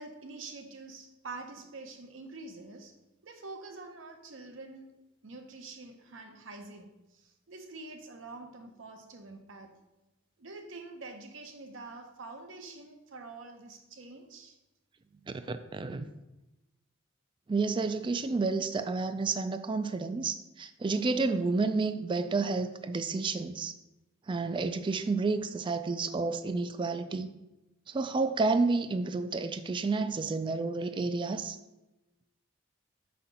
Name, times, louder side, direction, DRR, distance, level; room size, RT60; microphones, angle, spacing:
voice 1, 0.0-2.9 3.2-5.0 5.2-9.8 10.4-14.6, right 3 dB, 75° right, 0.8 m, -46 dB
voice 2, 15.5-16.1 17.5-23.7 24.3-27.3 27.9-31.6, right 3 dB, 25° right, 0.3 m, -30 dB
4.6 x 4.3 x 5.2 m
head